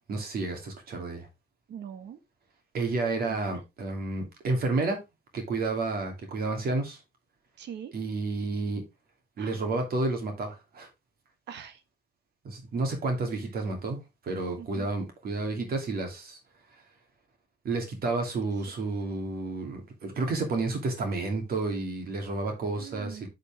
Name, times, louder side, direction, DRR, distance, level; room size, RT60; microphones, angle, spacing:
voice 1, 0.1-1.3 2.7-5.0 5.3-7.0 7.9-8.8 9.4-10.9 12.4-14.0 14.2-16.4 17.6-23.3, right 3 dB, 60° right, 2.9 m, -30 dB
voice 2, 1.7-2.2 3.3-3.4 7.6-7.9 9.4-9.5 11.5-11.8 14.6-14.9 22.8-23.3, right 8 dB, 80° right, 1.4 m, -42 dB
10.0 x 5.2 x 3.6 m
cardioid pair, 150°, 18 cm